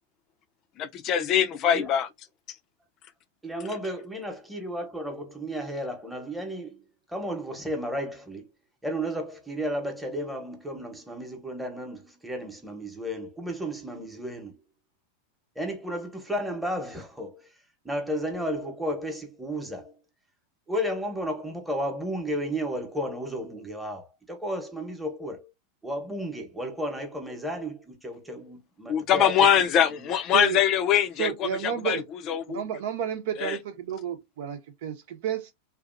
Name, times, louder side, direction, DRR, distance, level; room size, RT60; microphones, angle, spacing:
voice 1, 0.8-2.1 28.9-32.0 32.3-32.6 33.4-33.6, left 9 dB, 40° left, 0.5 m, -23 dB
voice 2, 3.4-8.5 8.8-14.6 15.5-17.5 17.8-20.0 20.7-25.5 25.8-29.6 29.9-30.1, equal, 5° right, 1.0 m, -33 dB
voice 3, 31.2-32.0 32.5-35.5, right 9 dB, 70° right, 0.9 m, -31 dB
2.8 x 2.4 x 2.5 m
hypercardioid pair, 115°, 0 cm